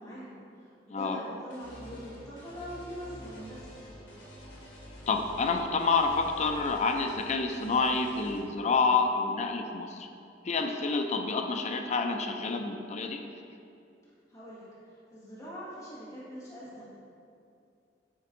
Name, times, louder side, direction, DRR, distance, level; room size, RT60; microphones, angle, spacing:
voice 1, 0.0-4.1 14.3-16.9, equal, 20° left, -10 dB, 1.7 m, -43 dB
voice 2, 0.9-1.2 5.1-10.1 10.4-13.2, left 4 dB, 40° left, 5 dB, 0.5 m, -28 dB
sound 1, 1.5-8.4, equal, 80° left, 1.7 m, -48 dB
8.1 x 4.6 x 3.7 m, 2.5 s
head